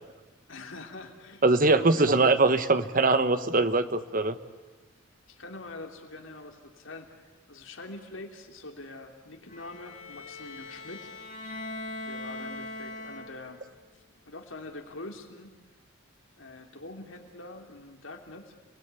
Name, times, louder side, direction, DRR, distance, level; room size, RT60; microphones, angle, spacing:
voice 1, 0.5-2.2 5.3-11.1 12.0-13.6 13.9-15.6 16.4-18.6, left 2 dB, 80° left, 4 dB, 3.2 m, -44 dB
voice 2, 1.4-4.4, right 3 dB, 45° right, 11 dB, 1.3 m, -22 dB
Bowed string instrument, 9.5-13.7, left 2 dB, 40° left, 4.1 m, -40 dB
29.5 x 20.5 x 9.8 m, 1.2 s
head